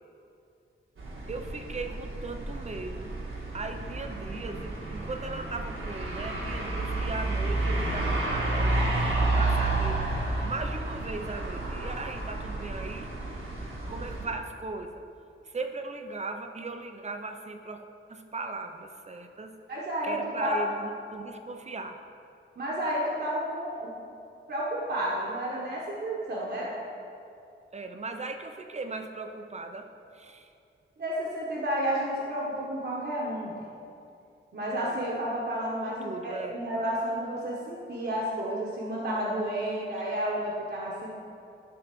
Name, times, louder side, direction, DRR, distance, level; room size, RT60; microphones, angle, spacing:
sound 1, 1.0-14.3, right 2 dB, 75° right, 1.5 m, -31 dB
voice 1, 1.3-3.2 3.5-9.1 9.3-13.1 13.9-15.0 15.4-19.5 20.0-22.0 27.7-30.5 34.9-35.0 35.8-36.6, right 3 dB, 35° right, 6 dB, 0.6 m, -38 dB
voice 2, 19.7-20.6 22.6-23.9 24.5-26.8 31.0-33.6 34.5-41.1, equal, 50° right, -5 dB, 1.2 m, -31 dB
11.0 x 3.9 x 6.0 m, 2.5 s
wide cardioid pair, 150°, 21 cm